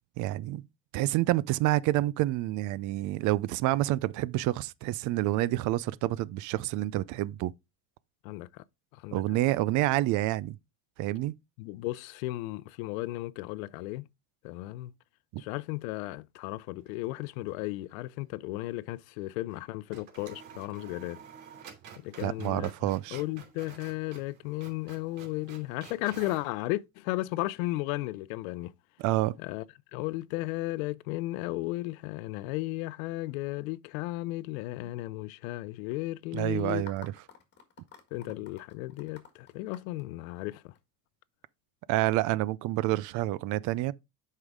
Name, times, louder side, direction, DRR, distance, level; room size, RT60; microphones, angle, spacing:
voice 1, 0.2-0.6 0.9-7.5 9.1-10.6 11.0-11.3 15.3-15.4 22.2-23.2 29.0-29.4 36.3-37.1 41.9-43.9, right 16 dB, 50° right, 0.5 m, -28 dB
voice 2, 8.2-8.6 9.0-9.2 11.6-14.0 14.4-14.9 15.4-21.2 22.0-22.7 23.1-28.7 29.4-29.6 29.9-36.8 38.1-40.7, left 19 dB, 85° left, 0.6 m, -35 dB
sound 1, 16.8-17.6 17.9-18.0 19.5-19.6 19.9-26.5, right 7 dB, 75° right, 2.9 m, -51 dB
sound 2, 36.4-40.8, left 7 dB, 25° left, 1.7 m, -52 dB
8.0 x 5.6 x 3.6 m
cardioid pair, 145°, 40 cm